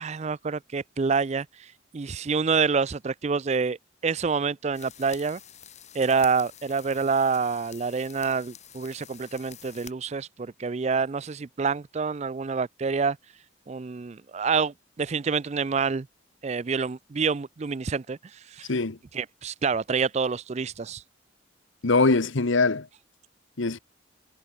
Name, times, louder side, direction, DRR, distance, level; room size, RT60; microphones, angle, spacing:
voice 1, 0.0-1.7 1.9-3.8 4.0-5.4 5.9-13.2 13.7-16.1 16.4-18.7 19.1-21.0, right 5 dB, 35° right, 0.4 m, -27 dB
sound 1, 4.7-9.9, left 9 dB, 35° left, 5.3 m, -48 dB
voice 2, 21.8-22.9 23.6-23.8, left 3 dB, 75° left, 1.1 m, -22 dB
head